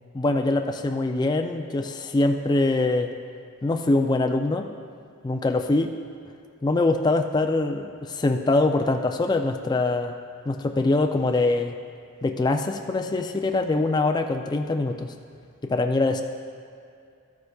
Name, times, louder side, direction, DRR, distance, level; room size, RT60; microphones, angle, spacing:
voice 1, 0.1-3.1 3.6-4.7 5.2-5.9 6.6-10.1 10.5-11.7 12.2-15.1 15.6-16.2, left 2 dB, 20° left, 4 dB, 0.3 m, -23 dB
12.5 x 9.5 x 2.3 m, 2.4 s
head